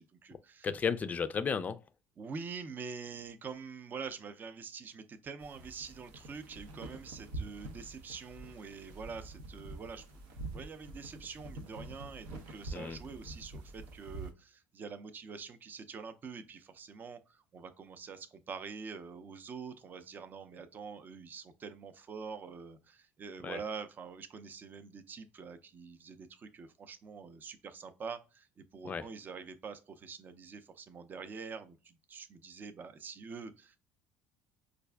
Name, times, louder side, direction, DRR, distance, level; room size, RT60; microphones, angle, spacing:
voice 1, 0.0-0.7 2.2-33.8, right 5 dB, 35° right, 0.5 m, -45 dB
voice 2, 0.6-1.8 12.7-13.0 23.4-23.6 28.9-29.0, left 6 dB, 30° left, 0.3 m, -33 dB
sound 1, 5.4-14.3, right 2 dB, 85° right, 0.7 m, -46 dB
4.5 x 2.5 x 2.2 m
supercardioid pair, 90°, 5 cm